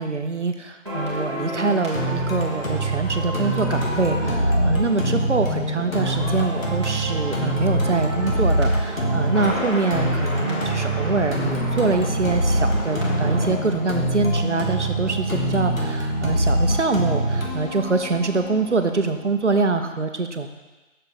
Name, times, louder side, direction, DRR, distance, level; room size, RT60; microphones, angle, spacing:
voice 1, 0.0-20.5, right 3 dB, 60° right, 7 dB, 0.8 m, -24 dB
sound 1, 0.9-15.0 15.3-15.5, equal, 20° right, 1.1 m, -33 dB
sound 2, 1.9-19.9, right 1 dB, 80° left, 1.8 m, -24 dB
6.4 x 4.5 x 6.5 m, 1.2 s
figure-of-eight pair, 170°, 40 cm